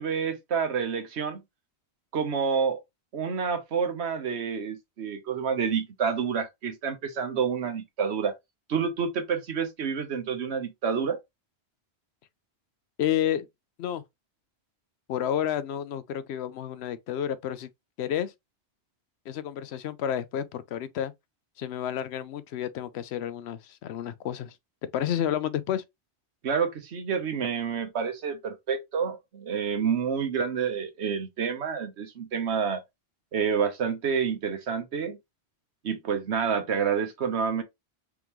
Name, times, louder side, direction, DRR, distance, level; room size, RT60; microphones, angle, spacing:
voice 1, 0.0-1.4 2.1-2.8 3.1-8.3 8.7-11.2 26.4-32.8 33.3-35.2 35.8-37.6, right 6 dB, 80° right, 1.2 m, -28 dB
voice 2, 13.0-13.5 13.8-14.0 15.1-17.7 18.0-18.3 19.3-21.1 21.6-24.5 24.9-25.8, left 10 dB, 80° left, 0.8 m, -30 dB
3.6 x 3.6 x 3.0 m
omnidirectional pair, 1.1 m